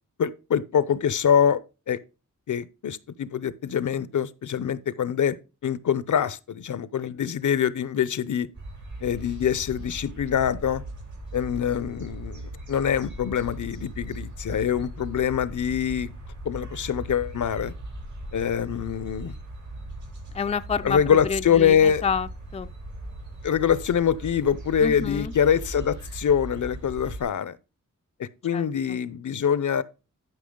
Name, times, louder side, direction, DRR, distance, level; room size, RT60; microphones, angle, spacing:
voice 1, 0.2-1.6 1.9-2.0 2.5-5.4 5.6-8.5 9.0-10.8 11.3-12.4 12.7-16.1 16.4-17.7 18.3-19.3 20.8-22.0 23.4-27.6 28.2-29.8, left 8 dB, 70° left, 0.7 m, -24 dB
sound 1, 8.5-27.2, right 1 dB, 70° right, 6.3 m, -39 dB
voice 2, 20.3-21.0 21.2-22.7 24.8-25.3 28.5-29.0, left 6 dB, 20° left, 0.4 m, -29 dB
12.0 x 5.9 x 3.7 m
wide cardioid pair, 110°, 31 cm